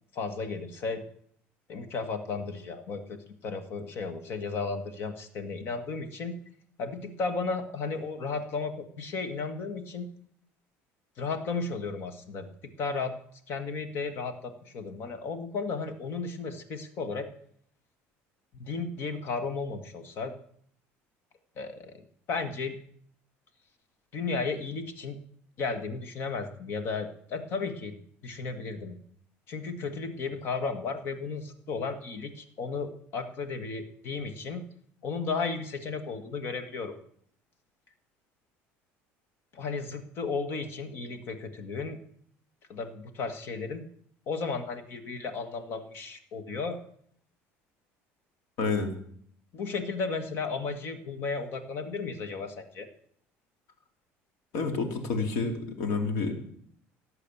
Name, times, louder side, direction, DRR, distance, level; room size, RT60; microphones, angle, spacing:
voice 1, 0.1-1.0 1.7-3.2 3.4-6.3 6.8-10.1 11.2-12.5 12.8-13.1 13.5-17.3 18.6-20.3 21.6-22.8 24.1-25.2 25.6-28.0 28.2-29.0 29.5-34.6 35.0-36.9 39.5-42.0 42.7-43.9 44.3-46.8 49.5-52.9, left 4 dB, 50° left, 9 dB, 1.8 m, -34 dB
voice 2, 48.6-48.9 54.5-56.3, left 4 dB, 75° left, 5 dB, 2.8 m, -29 dB
18.0 x 8.2 x 7.2 m, 0.63 s
cardioid pair, 145°, 5 cm